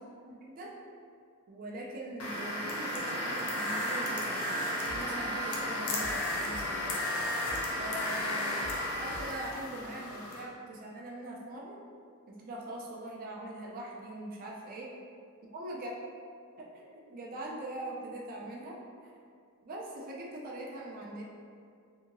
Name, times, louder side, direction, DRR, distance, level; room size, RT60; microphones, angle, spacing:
voice 1, 0.2-0.7 1.5-7.0 7.8-8.7 9.0-11.8 12.3-14.9 15.5-15.9 16.6-18.8 19.0-19.1 19.6-21.2, right 1 dB, 40° right, -3 dB, 0.4 m, -42 dB
sound 1, 2.2-10.4, left 1 dB, 70° left, 0.5 m, -33 dB
sound 2, 4.9-5.2 5.5-7.2 7.5-7.8 8.1-9.9, equal, 90° right, 0.6 m, -48 dB
2.8 x 2.7 x 2.5 m, 2.3 s
head